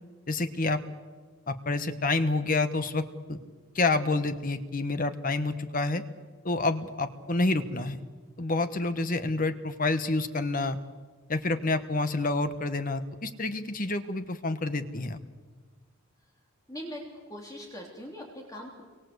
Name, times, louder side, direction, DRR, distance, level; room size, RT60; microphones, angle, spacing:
voice 1, 0.3-0.8 1.5-3.0 3.3-3.4 3.7-6.0 6.4-8.0 8.4-10.8 11.3-15.2, left 3 dB, 40° left, 10 dB, 1.2 m, -28 dB
voice 2, 16.7-17.0 17.3-18.8, equal, 15° left, -1 dB, 3.4 m, -41 dB
28.5 x 23.5 x 8.1 m, 1.4 s
head